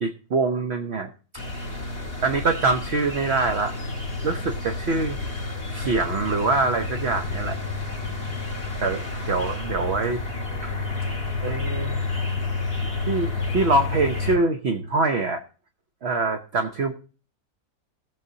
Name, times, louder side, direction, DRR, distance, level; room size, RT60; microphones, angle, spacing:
voice 1, 0.0-1.1 2.2-3.7 4.2-5.2 5.7-7.6 8.8-10.2 10.6-10.7 11.4-12.0 13.1-15.4 16.0-16.9, right 3 dB, 50° right, 6 dB, 1.0 m, -24 dB
sound 1, 1.4-14.4, left 3 dB, 40° left, 2.5 m, -30 dB
20.0 x 7.6 x 2.7 m, 0.38 s
omnidirectional pair, 1.6 m